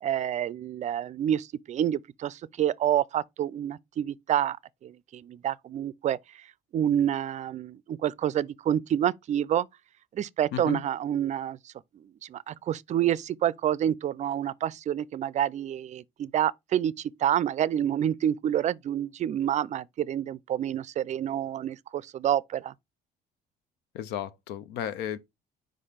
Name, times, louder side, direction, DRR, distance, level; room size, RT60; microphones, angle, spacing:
voice 1, 0.0-4.6 4.8-6.2 6.7-9.7 10.1-11.6 12.3-22.7, right 10 dB, 45° right, 0.4 m, -28 dB
voice 2, 23.9-25.2, left 10 dB, 85° left, 0.6 m, -34 dB
5.2 x 3.3 x 5.6 m
cardioid pair, 110°, 17 cm